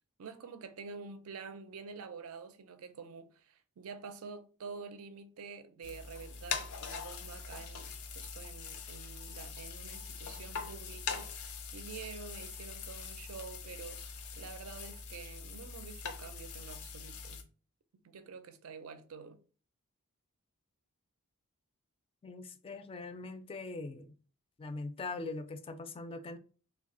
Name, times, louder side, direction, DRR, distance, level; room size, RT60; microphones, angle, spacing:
voice 1, 0.2-11.3 11.7-17.5 18.0-19.4, right 5 dB, 70° right, 0.5 m, -48 dB
sound 1, 5.8-17.4, left 5 dB, 85° left, 0.6 m, -43 dB
voice 2, 22.2-24.1 24.6-26.4, left 3 dB, 25° left, 0.4 m, -42 dB
3.2 x 2.3 x 3.7 m
head